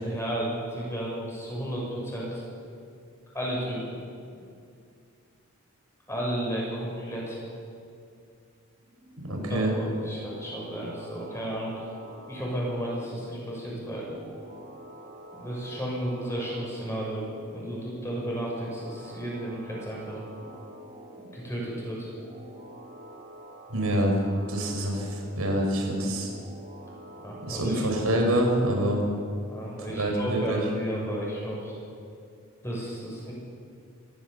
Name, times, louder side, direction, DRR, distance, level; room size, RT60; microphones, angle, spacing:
voice 1, 0.0-2.4 3.3-4.0 6.1-7.4 9.3-11.7 12.3-14.1 15.3-20.2 21.2-22.1 27.2-27.8 29.5-31.7 32.6-33.3, right 1 dB, 10° left, -4 dB, 6.6 m, -33 dB
sound 1, 8.7-28.6, right 1 dB, 40° right, 5.1 m, -47 dB
voice 2, 9.2-9.7 23.7-24.1 24.5-26.3 27.4-29.0 29.9-30.6, right 1 dB, 85° right, 1 dB, 5.1 m, -26 dB
27.0 x 14.5 x 7.0 m, 2.4 s
head